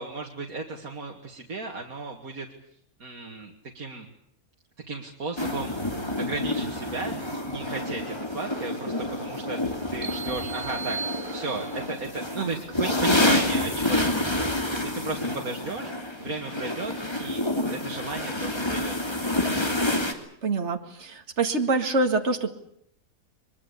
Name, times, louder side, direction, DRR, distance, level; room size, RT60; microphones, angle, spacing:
voice 1, 0.0-2.5 3.0-4.1 4.9-5.7 6.2-11.0 11.3-15.9 16.2-17.4 17.7-19.5, right 3 dB, 70° right, 0 dB, 2.6 m, -35 dB
sound 1, 5.4-20.1, left 1 dB, 15° left, 2.9 m, -28 dB
sound 2, 10.0-12.0, right 5 dB, 30° right, 1.4 m, -37 dB
voice 2, 20.4-22.5, right 3 dB, 50° right, 5 dB, 2.3 m, -26 dB
23.5 x 22.5 x 8.4 m, 0.71 s
omnidirectional pair, 1.6 m